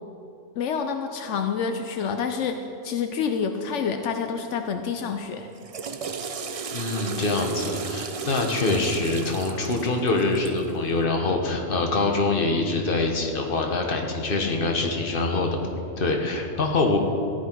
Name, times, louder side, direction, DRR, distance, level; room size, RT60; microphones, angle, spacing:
voice 1, 0.6-2.6 2.8-5.5, left 6 dB, 85° left, 7 dB, 1.0 m, -28 dB
Water / Toilet flush, 5.4-10.7, right 5 dB, 45° right, 0.5 m, -34 dB
voice 2, 6.7-15.6 16.0-17.0, left 3 dB, 50° left, 2 dB, 1.4 m, -24 dB
14.5 x 10.5 x 4.6 m, 2.9 s
omnidirectional pair, 1.2 m